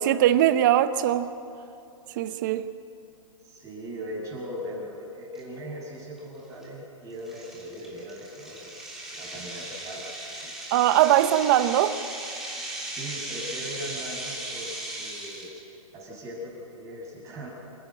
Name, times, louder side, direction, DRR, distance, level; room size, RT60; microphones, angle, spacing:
voice 1, 0.0-1.3 2.2-2.6 10.7-12.0, right 12 dB, 35° right, 0.7 m, -21 dB
voice 2, 3.4-10.5 12.7-15.5 15.9-17.5, equal, 20° right, 5.9 m, -39 dB
sound 1, 5.3-5.4 6.0-6.2 6.6-6.7 7.3-15.6, right 1 dB, ahead, 3.1 m, -37 dB
27.0 x 10.5 x 9.6 m
hypercardioid pair, 155°, 18 cm